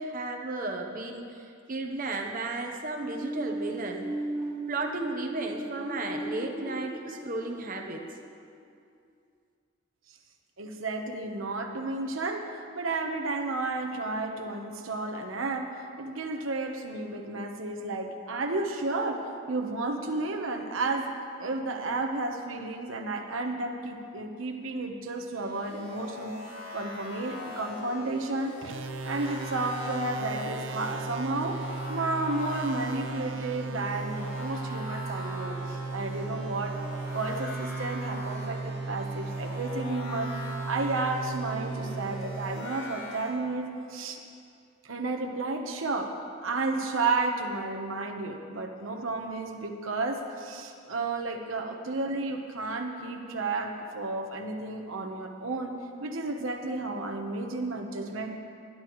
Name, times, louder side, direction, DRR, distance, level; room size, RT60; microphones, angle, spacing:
voice 1, 0.0-4.1 4.7-8.0, right 2 dB, 45° right, 2 dB, 1.0 m, -34 dB
sound 1, 3.0-8.7, right 1 dB, 10° right, 2.6 m, -36 dB
voice 2, 10.6-21.1 21.4-26.4 26.7-28.5 29.0-36.8 37.1-40.3 40.7-44.2 44.8-55.7 56.0-58.4, right 3 dB, 85° right, 3 dB, 1.1 m, -32 dB
sound 2, 25.3-43.3, left 2 dB, 85° left, 3.7 m, -42 dB
sound 3, 28.6-43.2, right 3 dB, 70° right, 0.5 m, -36 dB
20.5 x 11.5 x 3.2 m, 2.4 s
head